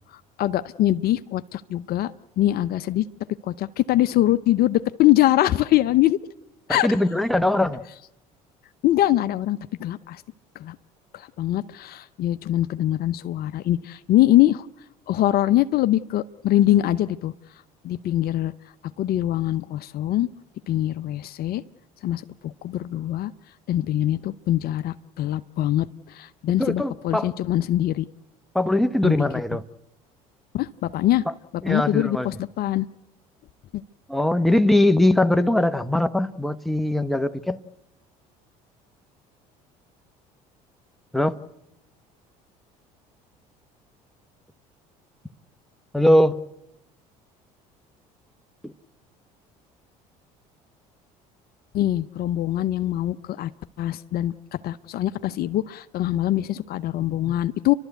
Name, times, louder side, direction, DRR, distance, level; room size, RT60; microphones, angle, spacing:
voice 1, 0.4-3.0 3.4-6.2 6.7-6.9 8.8-10.2 10.6-10.8 11.1-14.7 15.1-17.3 17.8-18.5 19.0-20.3 20.7-21.6 22.0-23.3 23.7-28.1 29.0-29.1 30.5-31.2 31.7-32.9 33.7-33.8 51.7-53.5 53.8-54.3 54.6-57.7, left 14 dB, 55° left, 0.7 m, -23 dB
voice 2, 6.7-7.8 26.6-27.3 28.5-29.6 31.6-32.3 34.1-37.6 41.1-41.4 45.9-46.4 48.6-48.7, left 1 dB, ahead, 1.1 m, -21 dB
29.5 x 12.5 x 8.1 m
hypercardioid pair, 70°, 18 cm